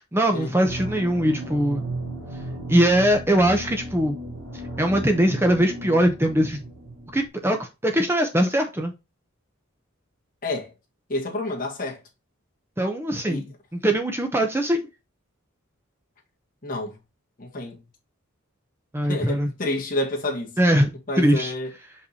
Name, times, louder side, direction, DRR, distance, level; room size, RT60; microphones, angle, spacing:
voice 1, 0.0-1.8 2.7-4.2 4.8-6.6 7.1-8.9 12.8-13.5 13.7-14.8 18.9-19.5 20.6-21.5, right 1 dB, 10° right, 0.6 m, -21 dB
sound 1, 0.6-7.3, right 1 dB, 50° right, 2.5 m, -35 dB
voice 2, 10.4-10.7 11.1-12.0 13.3-13.5 16.6-17.0 17.4-17.8 19.0-20.5 21.1-21.7, left 2 dB, 40° left, 1.8 m, -29 dB
6.6 x 5.3 x 2.7 m
head